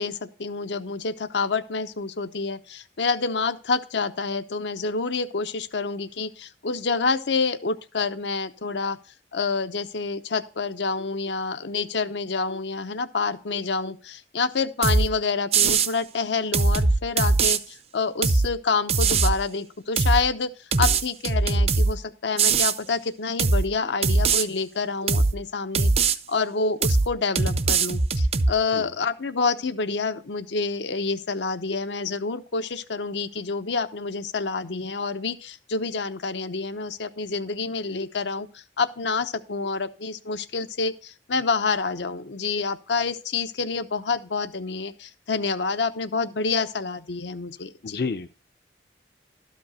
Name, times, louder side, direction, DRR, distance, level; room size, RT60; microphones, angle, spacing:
voice 1, 0.0-9.0 9.3-20.5 20.8-38.5 38.8-48.0, left 4 dB, 85° left, 9 dB, 0.7 m, -28 dB
sound 1, 14.8-15.1 15.5-15.9 16.5-17.6 18.2-18.5 18.9-19.4 20.0-20.2 20.7-21.9 22.4-22.8 23.4-23.7 24.0-24.4 25.1-25.4 25.7-26.2 26.8-27.1 27.4-28.5, right 4 dB, 35° right, 0.5 m, -21 dB
voice 2, 47.8-48.3, left 4 dB, 55° left, 8 dB, 0.5 m, -30 dB
12.5 x 5.2 x 5.6 m, 0.37 s
head